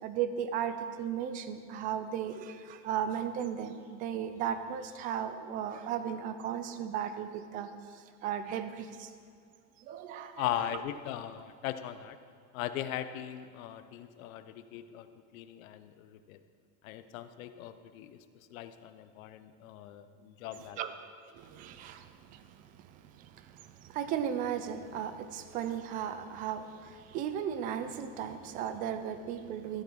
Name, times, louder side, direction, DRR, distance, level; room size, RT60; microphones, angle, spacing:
voice 1, 0.0-2.5 2.8-7.7 8.2-8.9 9.9-10.5 20.8-20.9 21.6-22.0 23.9-26.7 27.1-29.8, right 9 dB, 20° right, 10 dB, 0.4 m, -35 dB
voice 2, 10.4-12.2 12.5-15.1 15.3-16.4 16.8-18.2 18.5-20.8, left 11 dB, 70° left, 11 dB, 0.9 m, -39 dB
13.5 x 8.7 x 6.3 m, 2.3 s
supercardioid pair, 160°, 43 cm